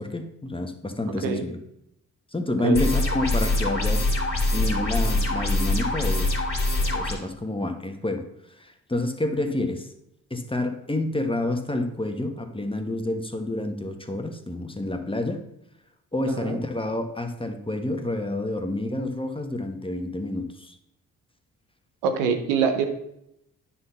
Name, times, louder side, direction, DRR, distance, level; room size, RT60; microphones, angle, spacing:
voice 1, 0.0-1.6 2.3-6.3 6.9-9.9 10.3-15.4 16.1-20.8, left 1 dB, 15° left, 6 dB, 1.4 m, -29 dB
sound 1, 2.8-7.1, left 2 dB, 35° left, 2.9 m, -24 dB
voice 2, 16.3-16.6 22.0-22.8, right 6 dB, 85° right, 5 dB, 1.0 m, -24 dB
9.6 x 4.3 x 5.8 m, 0.78 s
hypercardioid pair, 45°, 38 cm